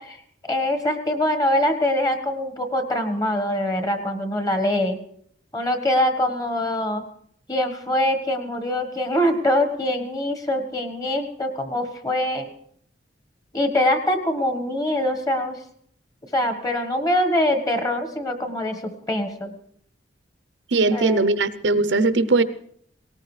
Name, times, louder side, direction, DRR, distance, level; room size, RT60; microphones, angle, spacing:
voice 1, 0.0-5.0 5.5-7.0 7.5-12.5 13.5-15.6 16.3-19.5 20.9-21.2, left 1 dB, 20° left, 1.4 m, -23 dB
voice 2, 20.7-22.4, right 3 dB, 85° right, 0.7 m, -19 dB
18.5 x 18.0 x 3.3 m
head